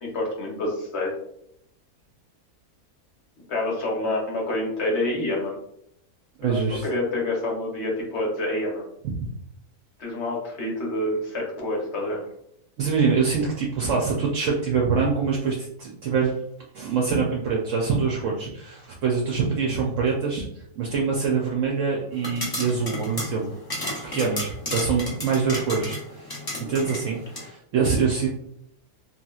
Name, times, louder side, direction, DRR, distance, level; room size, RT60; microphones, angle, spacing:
voice 1, 0.0-1.1 3.5-5.6 6.4-8.9 10.0-12.2 26.5-26.7, left 1 dB, 55° left, -2 dB, 1.0 m, -27 dB
voice 2, 6.4-6.9 9.0-9.3 12.8-16.3 16.7-20.5 20.8-23.5 24.0-28.3, right 5 dB, 70° right, -1 dB, 0.8 m, -25 dB
sound 1, 22.1-27.5, left 1 dB, 35° left, 0.3 m, -33 dB
2.9 x 2.8 x 2.3 m, 0.75 s
omnidirectional pair, 1.6 m